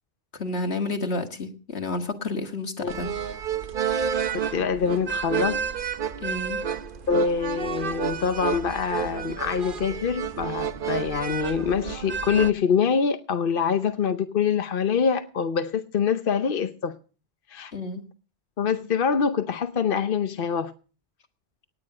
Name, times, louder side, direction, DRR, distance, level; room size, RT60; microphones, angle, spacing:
voice 1, 0.3-3.1 6.2-6.6 17.7-18.0, left 2 dB, 80° left, 2.1 m, -30 dB
sound 1, 2.9-12.5, right 7 dB, 55° right, 1.0 m, -30 dB
voice 2, 4.3-5.6 7.1-17.0 17.5-17.7 18.6-20.7, left 6 dB, 60° left, 1.0 m, -25 dB
18.5 x 9.8 x 4.9 m
omnidirectional pair, 1.1 m